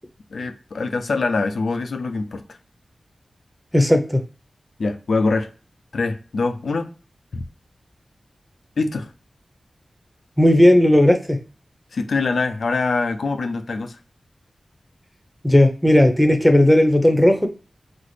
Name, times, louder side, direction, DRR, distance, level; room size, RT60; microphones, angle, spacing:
voice 1, 0.3-2.4 4.8-5.5 5.9-6.9 7.3-7.4 8.8-9.1 11.9-14.0, left 3 dB, 85° left, 0.4 m, -24 dB
voice 2, 3.7-4.2 10.4-11.4 15.4-17.5, left 1 dB, 5° left, 0.7 m, -15 dB
4.0 x 2.0 x 3.2 m
cardioid pair, 45°, 0 cm